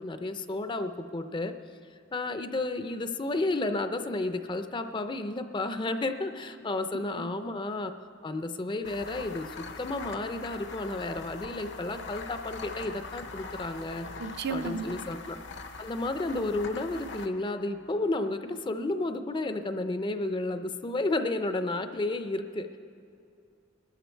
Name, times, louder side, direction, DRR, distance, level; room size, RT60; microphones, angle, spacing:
voice 1, 0.0-1.5 2.1-7.9 8.2-14.1 14.5-15.4 15.8-22.7, left 2 dB, 25° left, 9 dB, 0.5 m, -32 dB
sound 1, 8.8-18.2, left 4 dB, 65° left, 0.8 m, -43 dB
voice 2, 14.2-15.0, right 4 dB, 55° right, 8 dB, 0.6 m, -34 dB
20.0 x 12.5 x 4.5 m, 2.5 s
head